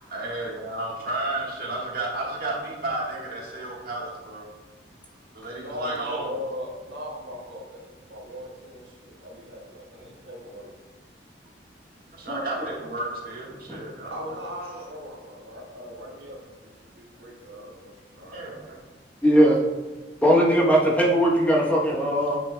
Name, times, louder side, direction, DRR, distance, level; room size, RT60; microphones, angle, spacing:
voice 1, 0.1-4.5 5.3-6.3 12.1-14.3 18.3-18.8, right 2 dB, 55° right, -3 dB, 1.5 m, -32 dB
voice 2, 5.4-10.7 14.1-16.4 16.8-18.5, equal, 80° right, -2 dB, 1.4 m, -39 dB
voice 3, 19.2-19.6 20.2-22.4, equal, 10° left, -4 dB, 0.9 m, -20 dB
8.8 x 5.1 x 2.2 m, 1.3 s
head